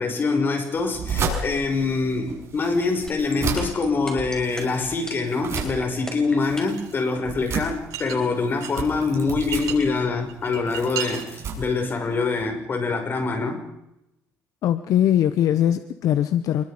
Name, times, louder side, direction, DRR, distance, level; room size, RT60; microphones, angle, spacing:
voice 1, 0.0-13.6, left 4 dB, 35° left, 5 dB, 5.9 m, -25 dB
sound 1, 0.7-12.5, right 5 dB, 50° right, 7.0 m, -33 dB
sound 2, 3.1-6.9, left 1 dB, 10° left, 6.4 m, -35 dB
sound 3, 6.8-7.0 7.9-8.8 9.1-9.8 10.3-11.3, right 11 dB, 80° right, 7.6 m, -32 dB
voice 2, 14.6-16.6, left 11 dB, 65° left, 11 dB, 1.1 m, -21 dB
28.5 x 22.5 x 5.2 m, 0.89 s
cardioid pair, 120°, 6 cm